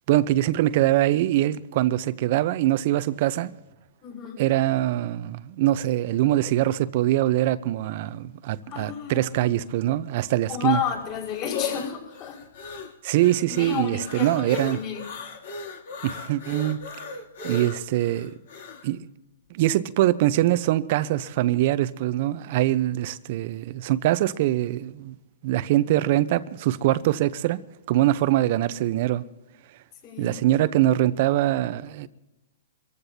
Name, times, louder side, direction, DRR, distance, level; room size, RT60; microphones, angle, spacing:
voice 1, 0.1-3.5 4.4-10.8 13.0-14.8 16.0-16.8 17.4-18.3 18.8-19.1 19.5-25.2 25.4-27.6 27.9-29.2 30.2-32.1, right 14 dB, 50° right, 0.8 m, -23 dB
voice 2, 4.0-4.4 8.7-9.5 10.5-12.4 13.5-15.0 30.0-30.3, left 8 dB, 35° left, 5.5 m, -31 dB
sound 1, 10.6-18.9, left 4 dB, 65° left, 2.9 m, -37 dB
26.0 x 15.0 x 2.8 m
hypercardioid pair, 135°, 0 cm